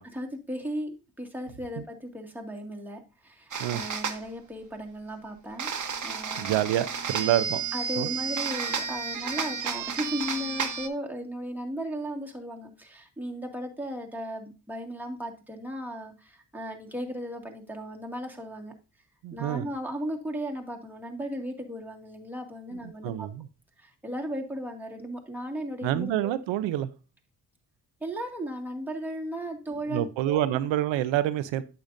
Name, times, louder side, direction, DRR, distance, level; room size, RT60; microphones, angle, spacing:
voice 1, 0.1-5.7 6.0-6.6 7.7-18.7 19.3-23.3 23.8-26.3 28.0-30.5, equal, 5° right, 0 dB, 1.9 m, -36 dB
sound 1, 3.5-4.2 5.6-10.9, right 6 dB, 45° right, 1.1 m, -32 dB
voice 2, 6.4-7.6 8.0-8.1 19.2-19.6 22.7-23.5 25.8-26.9 29.9-31.6, right 12 dB, 85° right, 15 dB, 0.6 m, -27 dB
8.9 x 6.9 x 2.6 m, 0.31 s
supercardioid pair, 50°, 43 cm